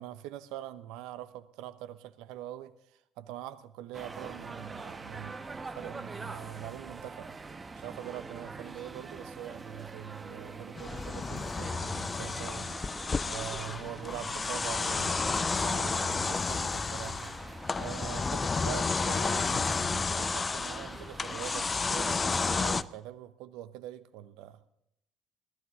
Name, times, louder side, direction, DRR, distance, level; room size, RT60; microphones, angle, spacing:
voice 1, 0.0-7.4 7.7-12.8 13.3-17.3 17.7-24.6, right 12 dB, 70° right, 0.9 m, -43 dB
sound 1, 3.9-22.9, right 3 dB, 25° right, 1.2 m, -45 dB
sound 2, 10.8-22.8, left 4 dB, 30° left, 0.6 m, -31 dB
18.5 x 15.0 x 3.8 m
hypercardioid pair, 55°, 0 cm